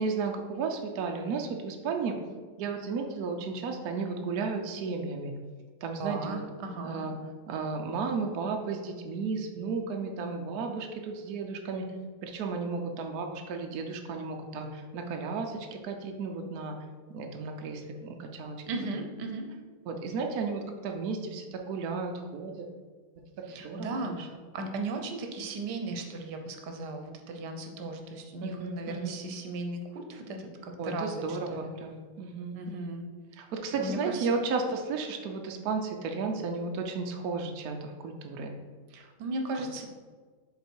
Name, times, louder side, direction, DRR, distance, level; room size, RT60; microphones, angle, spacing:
voice 1, 0.0-2.2 2.6-5.3 5.8-6.4 6.8-7.1 7.5-11.8 12.2-16.8 17.1-18.6 19.9-22.7 23.4-24.2 28.4-29.2 30.8-32.9 33.4-38.5, right 4 dB, 70° right, 3 dB, 1.1 m, -34 dB
voice 2, 6.0-7.1 18.6-19.5 23.4-31.7 32.5-33.0 33.4-33.5 33.7-34.4 38.9-39.9, right 2 dB, 85° right, 4 dB, 1.4 m, -36 dB
7.2 x 3.9 x 4.5 m, 1.5 s
omnidirectional pair, 1.7 m